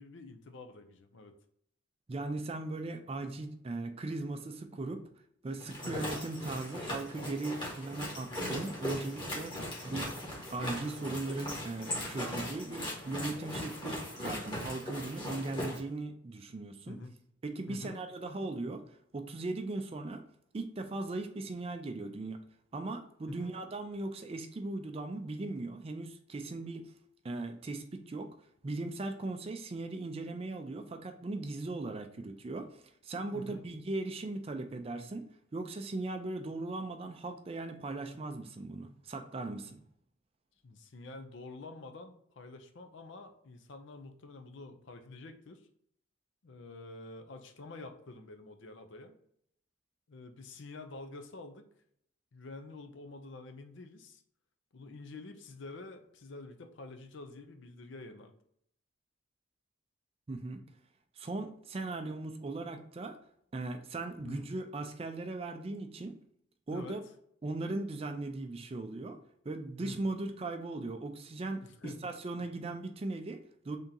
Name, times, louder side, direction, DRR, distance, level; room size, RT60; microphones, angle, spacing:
voice 1, 0.0-1.3 5.8-6.2 16.9-17.1 17.7-18.0 23.3-23.5 33.3-33.6 40.6-45.7 46.4-49.2 50.1-51.7 52.3-54.2 54.7-58.3 64.2-64.5 66.7-67.0 69.8-70.0 71.6-72.1, left 3 dB, 65° left, 6 dB, 0.5 m, -48 dB
voice 2, 2.1-5.1 5.4-10.1 10.5-17.0 17.4-18.8 19.1-20.2 20.5-22.4 22.7-26.9 27.2-28.3 28.6-32.7 33.0-35.3 35.5-39.8 60.3-60.6 61.2-63.2 63.5-66.1 66.7-67.0 67.4-69.2 69.5-73.8, right 2 dB, 30° right, 6 dB, 0.3 m, -38 dB
sound 1, 5.6-15.8, equal, 20° left, 1.0 m, -39 dB
3.5 x 2.8 x 3.8 m, 0.68 s
head